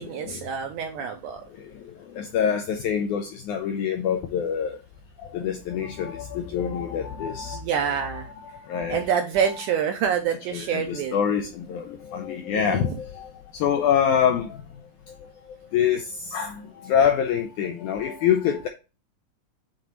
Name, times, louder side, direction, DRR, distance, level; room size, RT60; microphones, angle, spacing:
voice 1, 0.0-1.4 7.5-8.3 8.9-11.2 12.5-12.9, right 7 dB, 80° right, 1.8 m, -27 dB
voice 2, 1.6-4.8 5.2-8.1 8.4-9.0 10.5-14.6 15.2-15.3 15.7-18.7, left 8 dB, 85° left, 1.7 m, -26 dB
9.0 x 3.8 x 3.0 m
omnidirectional pair, 4.3 m